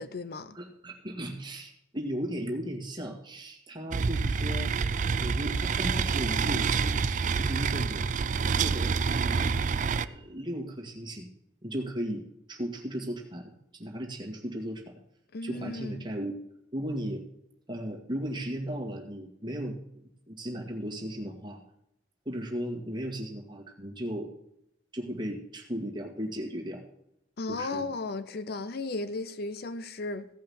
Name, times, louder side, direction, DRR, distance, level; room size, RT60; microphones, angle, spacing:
voice 1, 0.0-0.6 15.3-16.1 27.4-30.3, left 3 dB, 50° left, 0.6 m, -35 dB
voice 2, 0.5-4.7 5.2-8.0 8.6-8.9 9.2-9.5 9.8-11.3 11.6-12.2 12.5-14.8 15.4-16.4 16.7-17.2 17.7-21.6 22.3-24.3 24.9-26.8 27.5-27.9, equal, 25° right, 2.0 m, -36 dB
sound 1, 3.9-10.0, right 5 dB, 40° right, 0.4 m, -27 dB
16.0 x 5.7 x 7.1 m
head